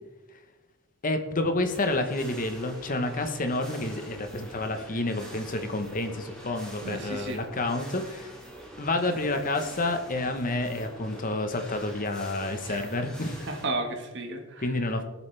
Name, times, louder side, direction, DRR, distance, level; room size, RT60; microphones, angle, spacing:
voice 1, 1.0-8.3 8.8-13.5 14.6-15.0, left 2 dB, 45° left, 7 dB, 1.1 m, -29 dB
sound 1, 1.7-13.7, equal, 5° left, 2.9 m, -45 dB
voice 2, 6.8-7.4 12.6-12.9 13.4-14.7, right 2 dB, 60° right, 4 dB, 1.8 m, -33 dB
20.5 x 7.2 x 3.4 m, 1.2 s
head